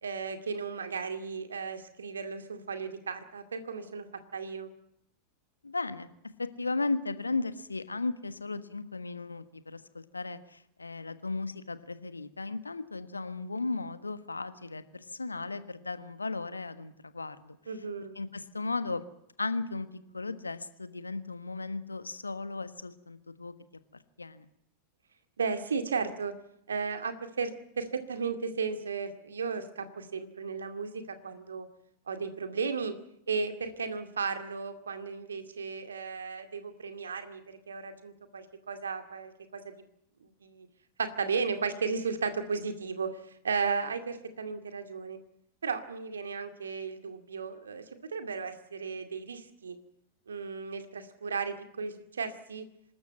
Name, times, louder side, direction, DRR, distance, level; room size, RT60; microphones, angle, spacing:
voice 1, 0.0-4.1 4.3-4.7 17.7-18.2 25.4-26.3 26.7-27.5 27.8-31.7 32.1-32.9 33.3-39.7 40.4-40.7 41.0-43.2 43.4-45.2 45.6-47.8 48.1-49.8 50.3-52.6, right 5 dB, 70° right, 9 dB, 2.2 m, -34 dB
voice 2, 5.6-6.1 6.4-17.6 18.1-19.0 19.4-19.9 20.1-23.5 24.2-24.5, left 3 dB, 80° left, 13 dB, 1.4 m, -35 dB
25.5 x 13.5 x 9.3 m, 0.76 s
figure-of-eight pair, 90°, 0 cm